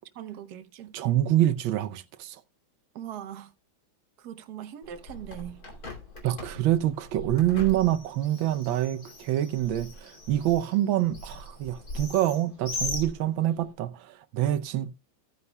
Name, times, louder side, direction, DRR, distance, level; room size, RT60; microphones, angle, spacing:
voice 1, 0.1-0.9 2.9-3.5 4.2-5.6, right 10 dB, 60° right, 1.3 m, -40 dB
voice 2, 0.9-2.4 6.2-14.9, right 13 dB, 85° right, 1.5 m, -26 dB
Bird, 4.8-13.7, left 2 dB, 50° left, 3.2 m, -40 dB
15.5 x 9.6 x 2.2 m
omnidirectional pair, 2.1 m